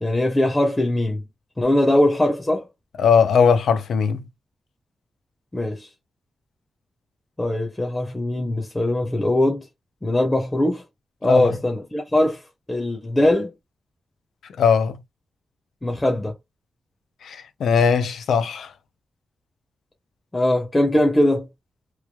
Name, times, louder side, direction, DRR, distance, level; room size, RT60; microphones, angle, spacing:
voice 1, 0.0-1.2 1.6-2.7 5.5-5.9 7.4-9.6 10.0-10.8 11.2-12.4 12.7-13.5 15.8-16.3 20.3-21.5, left 1 dB, 15° left, 0.6 m, -21 dB
voice 2, 3.0-4.3 11.3-11.5 14.6-15.0 17.2-18.7, left 6 dB, 90° left, 0.4 m, -19 dB
3.0 x 2.2 x 2.2 m
wide cardioid pair, 135°, 0 cm